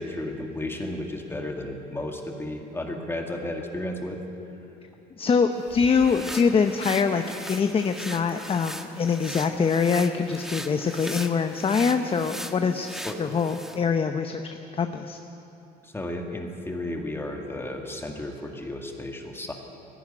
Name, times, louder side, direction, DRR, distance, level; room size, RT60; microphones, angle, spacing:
voice 1, 0.0-4.2 13.0-13.2 15.8-19.5, left 1 dB, 15° left, 2 dB, 2.1 m, -33 dB
voice 2, 5.2-7.2 7.5-12.9 13.2-15.2, left 5 dB, 35° left, 7 dB, 0.9 m, -24 dB
sound 1, 5.6-13.8, equal, ahead, 1.3 m, -39 dB
17.5 x 15.5 x 10.0 m, 2.9 s
cardioid pair, 110°, 17 cm